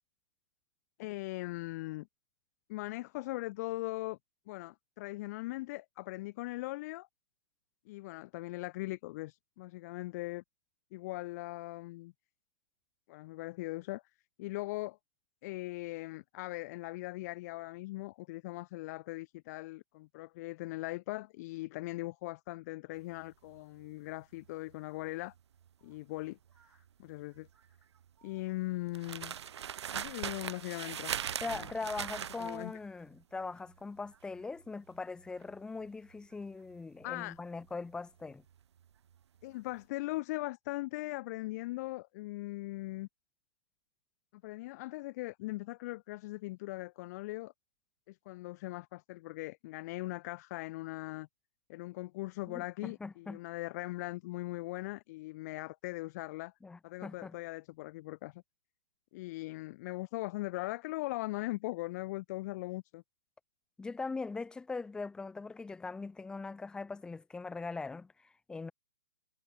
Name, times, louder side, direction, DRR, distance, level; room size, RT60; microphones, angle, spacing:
voice 1, 1.0-2.1 2.7-4.2 4.5-7.1 7.9-10.4 10.9-12.1 13.1-14.0 14.4-15.0 15.4-25.3 25.8-26.4 27.0-27.5 28.2-29.3 29.9-31.7 32.4-32.7 37.0-37.4 39.4-43.1 44.4-47.5 48.1-51.3 51.7-56.5 56.8-58.4 59.1-63.0, left 20 dB, 35° left, 1.2 m, -40 dB
sound 1, 22.9-39.2 39.4-39.8, right 9 dB, 65° right, 1.4 m, -42 dB
voice 2, 31.4-38.4 52.5-53.4 56.6-57.3 63.8-68.7, left 4 dB, 5° left, 1.3 m, -41 dB
hypercardioid pair, 155°, 15 cm